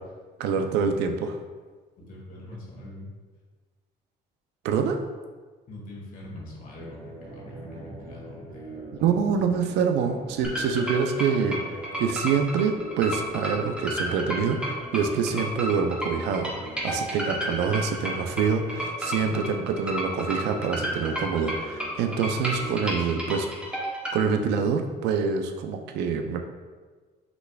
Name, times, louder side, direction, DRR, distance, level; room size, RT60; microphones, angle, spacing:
voice 1, 0.4-1.4 4.6-5.0 9.0-23.5 24.1-26.4, right 6 dB, 85° right, 5 dB, 0.5 m, -26 dB
voice 2, 2.0-3.1 5.7-8.9 22.2-23.4, left 1 dB, 55° left, -3 dB, 1.5 m, -43 dB
sound 1, 6.7-22.7, right 1 dB, 55° right, 1.4 m, -43 dB
sound 2, 10.4-24.2, right 1 dB, 5° right, 1.0 m, -31 dB
5.9 x 3.4 x 2.3 m, 1.4 s
cardioid pair, 110°, 17 cm